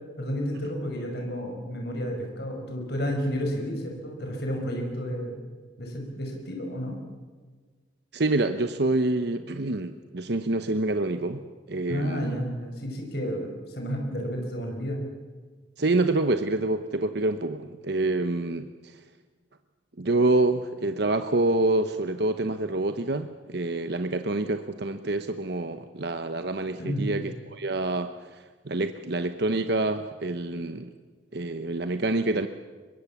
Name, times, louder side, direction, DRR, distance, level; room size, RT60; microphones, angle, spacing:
voice 1, 0.2-5.4 5.8-7.0 11.9-15.1 26.8-27.1, equal, 60° left, 2 dB, 5.7 m, -31 dB
voice 2, 8.1-12.4 15.8-19.0 20.0-30.9 31.3-32.5, right 2 dB, 60° right, 9 dB, 0.9 m, -27 dB
24.0 x 22.0 x 7.3 m, 1.4 s
head